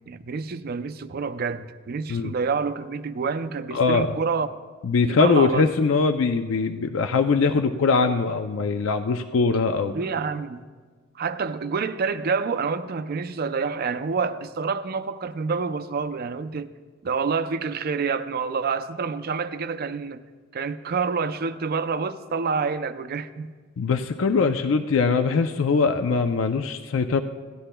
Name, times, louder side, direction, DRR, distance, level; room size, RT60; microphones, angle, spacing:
voice 1, 0.1-4.5 5.1-5.7 9.9-10.6 11.2-16.7 17.0-20.2 20.5-23.5, right 5 dB, 50° right, 0.4 m, -28 dB
voice 2, 3.7-4.2 4.8-9.9 23.8-27.2, left 4 dB, 70° left, 0.4 m, -22 dB
17.0 x 11.5 x 2.2 m
head